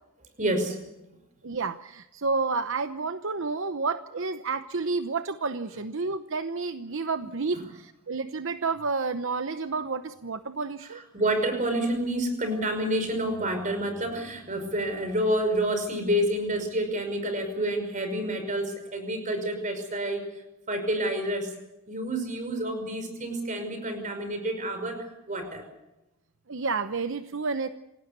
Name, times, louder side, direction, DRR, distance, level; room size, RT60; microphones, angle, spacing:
voice 1, 0.4-0.8 7.5-7.6 10.8-20.3 20.7-21.5 21.9-25.7, right 1 dB, 35° right, 8 dB, 5.6 m, -29 dB
voice 2, 1.4-11.0 26.5-27.7, right 4 dB, 60° right, 10 dB, 0.9 m, -30 dB
28.0 x 19.0 x 6.8 m, 0.95 s
head